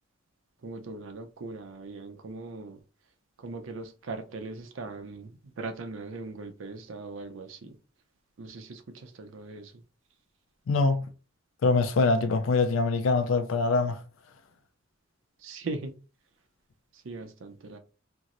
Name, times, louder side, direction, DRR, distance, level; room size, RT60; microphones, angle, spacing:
voice 1, 0.6-2.8 3.4-7.8 8.4-9.7 15.4-15.9 17.0-17.8, right 3 dB, 75° right, 0.5 m, -39 dB
voice 2, 10.7-11.1 11.6-14.0, left 3 dB, 85° left, 0.4 m, -24 dB
4.4 x 2.0 x 2.5 m
head